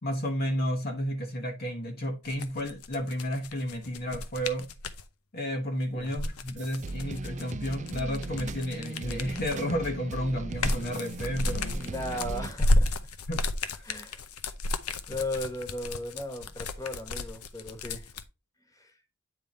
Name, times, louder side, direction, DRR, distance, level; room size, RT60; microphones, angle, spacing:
voice 1, 0.0-4.7 5.3-12.2 13.3-13.4 13.7-13.8, equal, 45° left, 1.1 m, -32 dB
sound 1, 2.2-5.0 6.0-9.7 10.2-18.2, left 2 dB, 85° left, 0.7 m, -32 dB
sound 2, 6.6-12.5, right 3 dB, 35° right, 0.5 m, -38 dB
voice 2, 11.7-13.1 13.8-14.2 15.1-18.1 18.7-18.9, left 1 dB, 15° left, 1.3 m, -36 dB
8.9 x 3.5 x 4.1 m
head